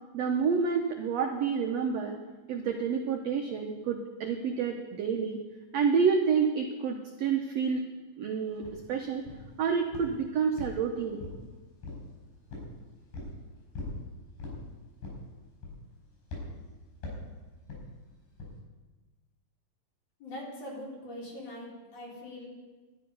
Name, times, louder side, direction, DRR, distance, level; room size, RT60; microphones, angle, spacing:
voice 1, 0.1-2.1 2.5-5.4 5.7-7.9 8.2-9.3 9.6-11.2, right 6 dB, 75° right, 3 dB, 1.5 m, -29 dB
sound 1, 8.6-8.8 9.3-9.6 9.9-10.2 10.6-11.5 11.8-12.1 12.5-12.7 13.1-13.4 13.7-14.0 14.4-14.6 15.0-15.3 15.6-15.9 16.3-16.5 17.0-17.3 17.7-17.9 18.4-18.6, left 2 dB, 85° left, 6.3 m, -40 dB
voice 2, 20.2-22.5, left 1 dB, 50° left, -5 dB, 4.2 m, -42 dB
12.5 x 9.8 x 5.4 m, 1.2 s
omnidirectional pair, 4.0 m